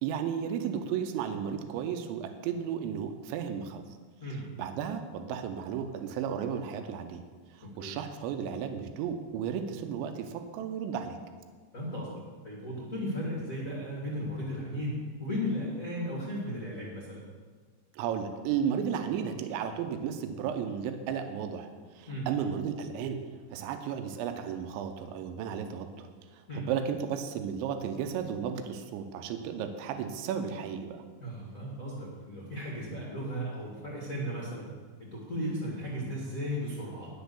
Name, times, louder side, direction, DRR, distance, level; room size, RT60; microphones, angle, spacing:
voice 1, 0.0-3.8 4.6-7.2 7.5-11.2 17.9-26.1 26.3-31.0, right 8 dB, 85° right, 7 dB, 3.1 m, -34 dB
voice 2, 11.7-12.1 12.4-17.3 22.1-22.3 26.5-26.7 31.2-34.7 35.0-37.1, equal, 80° left, -5 dB, 0.7 m, -35 dB
10.5 x 7.0 x 6.8 m, 1.5 s
omnidirectional pair, 5.2 m